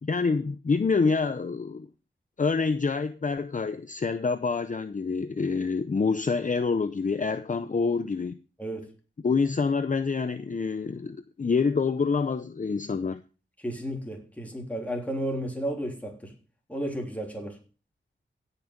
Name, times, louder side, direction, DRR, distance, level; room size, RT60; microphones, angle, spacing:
voice 1, 0.0-1.9 2.4-8.4 9.2-13.2, left 4 dB, 40° left, 0.6 m, -27 dB
voice 2, 8.6-8.9 13.6-16.3 16.7-17.6, right 1 dB, 5° left, 3.4 m, -33 dB
16.5 x 6.0 x 5.2 m
wide cardioid pair, 95°, 20 cm